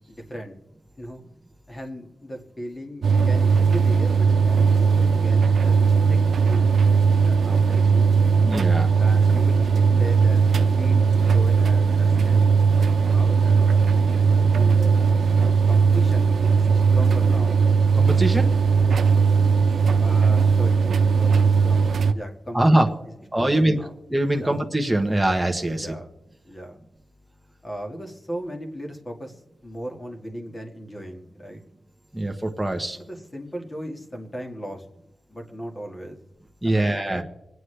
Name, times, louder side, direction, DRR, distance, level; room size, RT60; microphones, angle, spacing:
voice 1, 0.1-0.6 1.0-1.2 1.7-8.1 9.0-12.4 12.8-14.0 14.3-14.9 15.7-17.6 20.0-23.0 23.4-23.9 24.3-24.5 25.7-26.1 26.5-26.8 27.6-31.6 33.0-34.9 35.3-36.2 36.6-37.2, equal, 20° left, 3 dB, 1.8 m, -37 dB
sound 1, 3.0-22.1, right 5 dB, 90° right, 0.7 m, -18 dB
voice 2, 8.4-8.9 17.9-18.5 22.5-22.9 23.3-23.8 24.1-25.9 32.1-33.0 36.6-37.2, right 1 dB, 5° right, 1 dB, 1.1 m, -22 dB
26.0 x 9.4 x 3.3 m, 0.97 s
wide cardioid pair, 145°, 0 cm